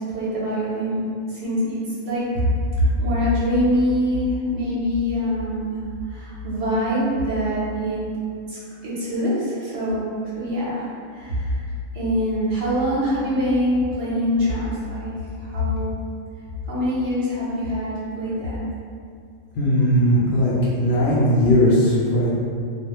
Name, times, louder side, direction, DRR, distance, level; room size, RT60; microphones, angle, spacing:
voice 1, 0.1-1.0 1.3-2.4 2.8-8.0 8.5-11.6 11.9-15.9 16.7-18.6, equal, 50° right, -8 dB, 0.8 m, -24 dB
voice 2, 19.5-22.3, equal, 65° left, -6 dB, 0.6 m, -18 dB
2.3 x 2.1 x 2.9 m, 2.3 s
omnidirectional pair, 1.5 m